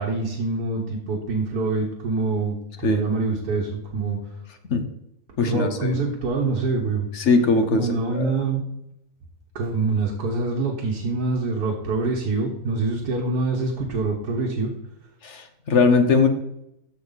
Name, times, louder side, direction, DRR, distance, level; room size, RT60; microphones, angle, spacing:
voice 1, 0.0-4.2 5.4-7.1 7.7-8.6 9.6-14.7, right 3 dB, 80° right, -2 dB, 1.8 m, -25 dB
voice 2, 5.4-6.0 7.1-8.3 15.2-16.3, left 4 dB, 50° left, 8 dB, 1.2 m, -20 dB
14.0 x 4.8 x 4.0 m, 0.81 s
omnidirectional pair, 1.7 m